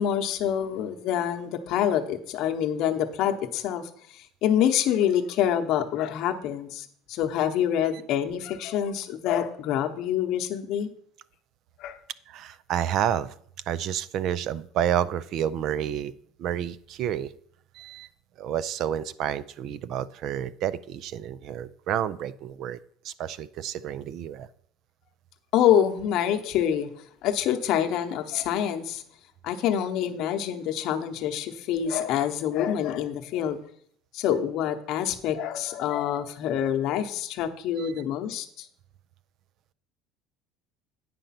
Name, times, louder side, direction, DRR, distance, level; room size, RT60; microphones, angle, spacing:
voice 1, 0.0-10.9 11.8-12.0 25.5-26.9 27.2-29.0 29.4-33.6 34.1-38.7, left 10 dB, 55° left, 6 dB, 0.9 m, -26 dB
voice 2, 12.3-13.3 13.7-16.1 16.4-17.3 17.7-18.1 18.4-22.8 23.0-24.5 37.8-38.0, right 10 dB, 50° right, 17 dB, 0.4 m, -30 dB
9.3 x 5.2 x 5.8 m, 0.63 s
cardioid pair, 145°, 0 cm